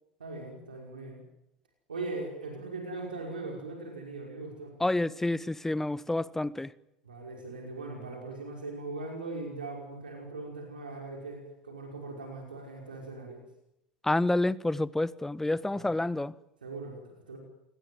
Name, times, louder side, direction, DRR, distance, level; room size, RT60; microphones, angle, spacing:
voice 1, 0.2-1.2 1.9-4.7 7.0-13.4 15.7-16.0 16.6-17.4, right 3 dB, 80° right, 5.5 m, -40 dB
voice 2, 4.8-6.7 14.0-16.3, left 2 dB, 5° left, 1.0 m, -28 dB
28.0 x 20.0 x 9.5 m
figure-of-eight pair, 75°, 5 cm